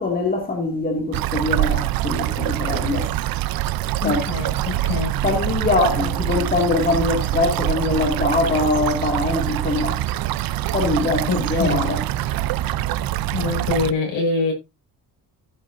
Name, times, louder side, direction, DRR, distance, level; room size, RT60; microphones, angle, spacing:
voice 1, 0.0-3.1 4.0-4.2 5.2-10.0 10.7-12.0, left 3 dB, 20° left, 2.6 m, -22 dB
sound 1, 1.1-13.9, right 14 dB, 60° right, 0.7 m, -24 dB
voice 2, 4.0-5.2 11.3-11.8 13.3-14.5, left 4 dB, 65° left, 7.0 m, -24 dB
14.5 x 7.9 x 2.7 m
cardioid pair, 150°, 40 cm